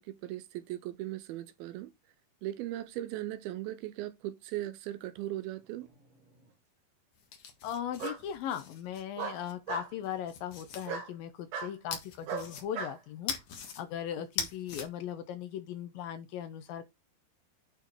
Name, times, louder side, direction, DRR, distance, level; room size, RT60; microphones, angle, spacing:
voice 1, 0.0-1.9 2.4-5.9 14.2-14.5, right 14 dB, 80° right, 2.3 m, -38 dB
Bark, 5.8-6.5 8.0-8.2 9.2-9.9 10.8-11.1 11.5-11.7 12.3-13.0, right 7 dB, 60° right, 3.0 m, -37 dB
sound 1, 7.1-9.5 10.0-10.9 11.9-12.9 13.3-13.8 14.2-14.9, left 7 dB, 55° left, 2.0 m, -40 dB
voice 2, 7.6-16.9, left 10 dB, 75° left, 2.3 m, -38 dB
9.2 x 4.4 x 4.3 m
omnidirectional pair, 4.6 m